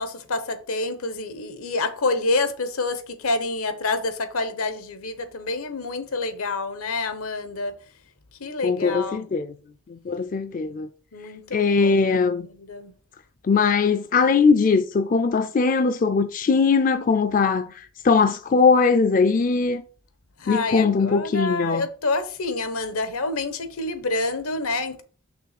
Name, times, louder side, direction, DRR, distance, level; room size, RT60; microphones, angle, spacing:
voice 1, 0.0-7.8 8.4-9.3 11.1-12.0 12.5-12.9 20.4-25.0, left 3 dB, 85° left, 1.0 m, -28 dB
voice 2, 8.6-9.5 9.9-10.9 11.5-12.5 13.4-19.8 20.5-21.9, left 4 dB, 40° left, 0.4 m, -20 dB
6.0 x 3.5 x 5.8 m
head